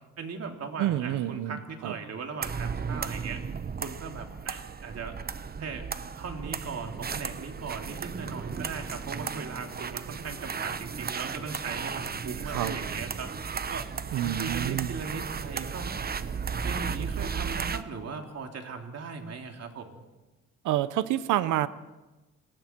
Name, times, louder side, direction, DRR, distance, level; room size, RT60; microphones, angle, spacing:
voice 1, 0.2-3.4 3.8-5.2 5.6-5.9 6.2-13.3 13.7-13.9 14.2-15.9 16.6-20.0, right 5 dB, 55° right, 3 dB, 3.1 m, -38 dB
voice 2, 0.8-1.9 12.4-12.8 14.1-14.9 20.6-21.7, right 13 dB, 85° right, 15 dB, 0.9 m, -28 dB
sound 1, 2.4-17.8, right 6 dB, 30° right, 1.0 m, -35 dB
28.5 x 20.5 x 4.6 m, 1.1 s
cardioid pair, 90°, 30 cm